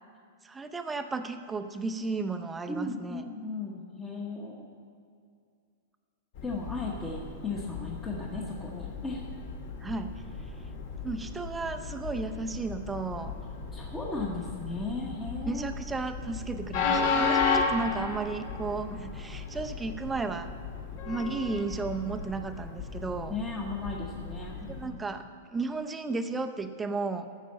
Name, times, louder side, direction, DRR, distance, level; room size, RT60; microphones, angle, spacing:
voice 1, 0.4-3.2 9.8-10.2 11.0-13.3 15.5-20.5 21.1-23.3 24.7-25.3 25.5-27.3, right 3 dB, 10° right, 7 dB, 0.6 m, -34 dB
voice 2, 2.7-4.7 6.4-9.2 13.7-15.7 23.3-25.0, left 3 dB, 10° left, -3 dB, 1.0 m, -36 dB
Train, 6.3-24.9, left 4 dB, 50° left, 2.0 m, -34 dB
15.0 x 6.4 x 7.4 m, 2.3 s
supercardioid pair, 165°, 0 cm